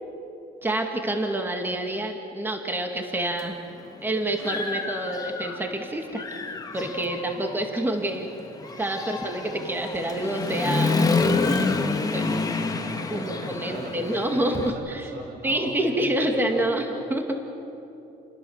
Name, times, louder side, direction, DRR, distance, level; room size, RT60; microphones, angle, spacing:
voice 1, 0.6-3.6 4.0-6.2 6.7-8.3 8.8-11.0 12.1-12.3 13.1-17.4, right 1 dB, 10° right, 3 dB, 2.2 m, -27 dB
Human voice / Motorcycle, 3.4-3.5 4.0-5.8 6.1-14.7, left 3 dB, 20° left, 1.8 m, -28 dB
voice 2, 6.5-7.1 12.7-16.6, right 2 dB, 75° right, 3 dB, 5.2 m, -40 dB
29.0 x 20.0 x 7.4 m, 2.9 s
cardioid pair, 110°, 17 cm